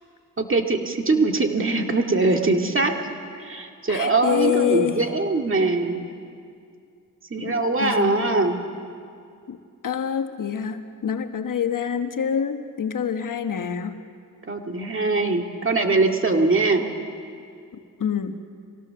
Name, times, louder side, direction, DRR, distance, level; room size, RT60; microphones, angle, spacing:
voice 1, 0.4-3.0 3.4-6.0 7.3-8.6 14.5-16.9, right 3 dB, 35° right, 3 dB, 2.1 m, -22 dB
voice 2, 3.9-5.0 7.4-8.3 9.5-9.6 9.8-14.0 18.0-18.4, left 8 dB, 65° left, 8 dB, 1.2 m, -26 dB
23.0 x 17.5 x 6.9 m, 2.3 s
cardioid pair, 65°, 34 cm